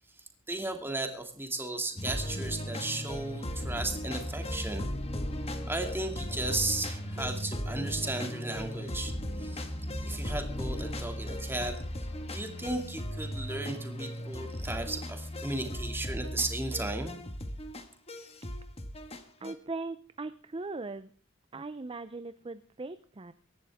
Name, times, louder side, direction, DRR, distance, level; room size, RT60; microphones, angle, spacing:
voice 1, 0.5-4.9 5.7-9.1 9.4-9.7 10.0-11.8 12.3-17.2, right 2 dB, 10° right, 4 dB, 2.4 m, -35 dB
sound 1, 2.0-19.5, equal, 30° left, 1.7 m, -36 dB
voice 2, 19.4-21.1 21.5-23.3, right 3 dB, 25° right, 12 dB, 0.5 m, -39 dB
23.5 x 11.5 x 3.6 m, 0.43 s
head